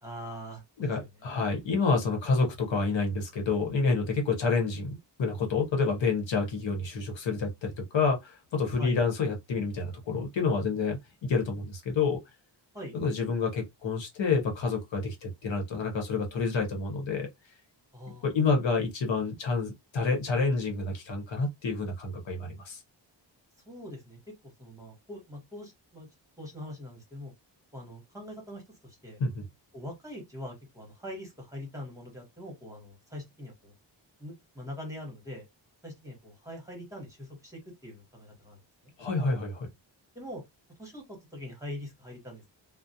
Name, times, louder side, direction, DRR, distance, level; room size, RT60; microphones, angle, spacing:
voice 1, 0.0-1.4 8.8-9.0 12.7-13.0 17.9-18.3 23.7-26.1 26.4-27.3 27.7-29.2 29.7-33.7 34.2-35.4 35.8-38.9 40.1-40.4 40.8-42.4, left 1 dB, 5° right, 1.1 m, -43 dB
voice 2, 0.8-12.2 12.9-17.3 18.2-22.8 29.2-29.4 39.0-39.7, left 4 dB, 75° left, 0.9 m, -28 dB
2.4 x 2.0 x 2.6 m
wide cardioid pair, 135°, 45 cm